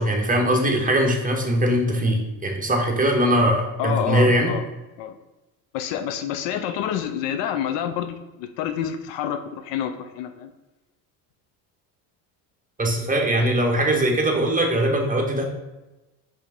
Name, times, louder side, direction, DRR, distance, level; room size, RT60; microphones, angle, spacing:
voice 1, 0.0-4.5 12.8-15.4, right 1 dB, 15° right, 1 dB, 1.5 m, -21 dB
voice 2, 3.8-4.6 5.0-5.2 5.7-10.5, left 9 dB, 65° left, 8 dB, 0.7 m, -28 dB
5.3 x 3.6 x 5.2 m, 1.0 s
hypercardioid pair, 75°, 46 cm